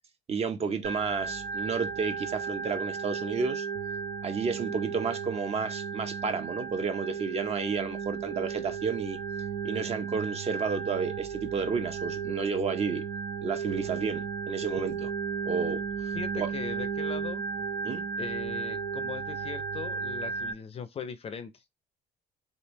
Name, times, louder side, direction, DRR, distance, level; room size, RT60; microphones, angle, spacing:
voice 1, 0.3-3.7 4.2-9.2 9.6-13.0 13.4-15.1 15.5-16.5 17.8-18.0, right 5 dB, 40° right, 0.7 m, -31 dB
Organ, 0.8-20.5, right 6 dB, 80° right, 0.6 m, -34 dB
voice 2, 16.1-17.4 18.2-21.5, left 6 dB, 35° left, 0.5 m, -39 dB
3.3 x 2.6 x 3.0 m
cardioid pair, 110°, 17 cm